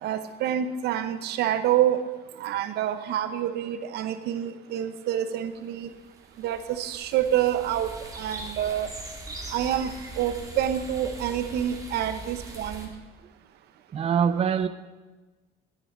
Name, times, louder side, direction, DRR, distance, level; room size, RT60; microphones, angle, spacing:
voice 1, 0.0-2.0 2.4-5.9 6.4-8.9 9.5-12.9, right 11 dB, 75° right, 9 dB, 0.8 m, -27 dB
sound 1, 5.8-12.9, right 2 dB, 20° right, 2.1 m, -41 dB
voice 2, 13.9-14.7, right 7 dB, 35° right, 10 dB, 0.5 m, -23 dB
11.5 x 9.8 x 4.4 m, 1.2 s
cardioid pair, 110°, 17 cm